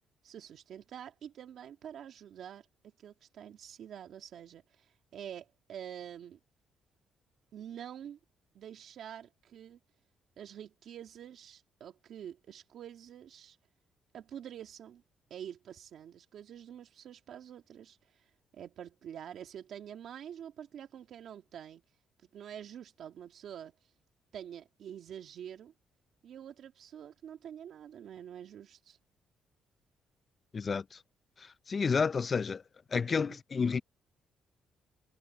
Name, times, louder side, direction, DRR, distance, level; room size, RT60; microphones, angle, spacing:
voice 1, 0.2-2.7 3.0-6.4 7.5-8.2 8.5-9.8 10.4-13.6 14.1-15.0 15.3-21.8 22.2-23.9 24.3-25.7 26.2-29.0 33.3-33.4, right 9 dB, 70° right, 2.2 m, -47 dB
voice 2, 30.5-31.0 31.4-32.6 32.9-33.8, left 5 dB, 40° left, 0.5 m, -30 dB
cardioid pair, 90°, 0 cm